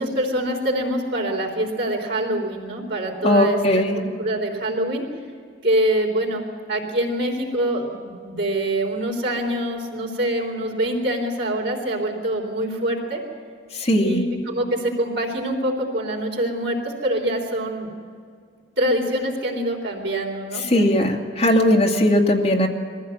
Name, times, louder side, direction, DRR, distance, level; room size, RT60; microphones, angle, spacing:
voice 1, 0.0-3.6 3.9-5.0 5.6-13.2 14.0-17.9 18.8-21.0, right 1 dB, 65° right, 0 dB, 3.7 m, -25 dB
voice 2, 3.2-3.9 13.7-14.2 20.7-22.7, left 1 dB, 35° left, 0 dB, 2.3 m, -18 dB
22.0 x 15.0 x 7.8 m, 2.1 s
head